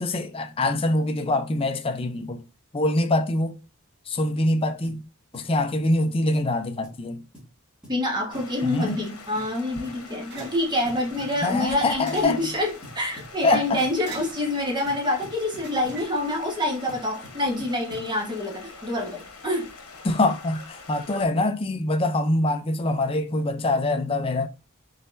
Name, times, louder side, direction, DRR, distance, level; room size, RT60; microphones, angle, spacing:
voice 1, 0.0-2.4 2.7-3.6 4.1-5.1 5.3-7.2 8.6-9.0 11.4-12.4 13.4-13.8 20.0-24.5, left 2 dB, 25° left, 0.4 m, -24 dB
sound 1, 4.8-5.0 5.3-5.5 5.8-6.1 6.3-6.5 6.8-7.0 7.3-7.5 7.8-8.0 8.3-8.5 8.9-9.1 9.4-9.5 9.8-10.0 10.4-10.6 10.9-12.0 12.8-14.0 14.9-16.1 16.9-18.1, equal, 5° right, 2.0 m, -46 dB
voice 2, 7.9-19.7, left 1 dB, 20° right, 1.2 m, -27 dB
Stream, 8.3-21.2, left 4 dB, 80° left, 1.1 m, -44 dB
sound 2, 9.1-17.1, right 4 dB, 50° right, 0.9 m, -47 dB
4.1 x 3.9 x 2.6 m
head